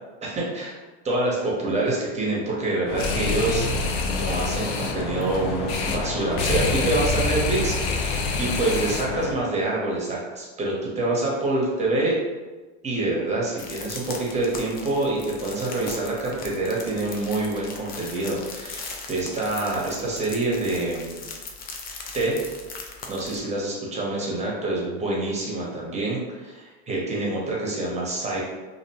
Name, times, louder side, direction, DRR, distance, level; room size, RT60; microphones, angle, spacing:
voice 1, 0.2-0.7 1.0-12.2 12.8-21.3 22.1-22.4 23.1-28.4, right 2 dB, 20° right, -3 dB, 0.9 m, -26 dB
sound 1, 2.9-9.3, left 3 dB, 75° left, 0.5 m, -26 dB
sound 2, 13.6-23.4, left 4 dB, 30° left, 0.4 m, -39 dB
2.5 x 2.1 x 2.9 m, 1.2 s
hypercardioid pair, 100°, 32 cm